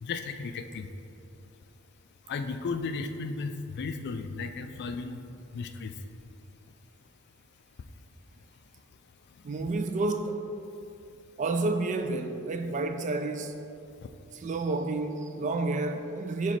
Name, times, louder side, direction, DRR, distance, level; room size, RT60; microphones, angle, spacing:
voice 1, 0.0-0.9 2.3-5.2 5.5-5.9, left 4 dB, 50° left, 0.3 m, -34 dB
voice 2, 9.4-10.5 11.4-13.5 14.3-16.6, right 3 dB, 35° right, 0.3 m, -30 dB
5.0 x 4.0 x 5.7 m
head